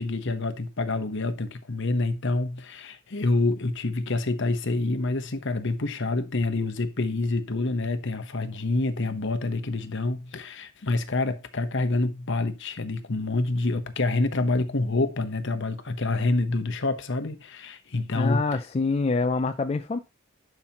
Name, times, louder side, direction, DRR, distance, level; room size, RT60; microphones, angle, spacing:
voice 1, 0.0-18.4, left 2 dB, 55° left, 1.0 m, -27 dB
voice 2, 18.1-20.0, left 3 dB, 30° left, 0.4 m, -26 dB
11.0 x 5.8 x 3.0 m
head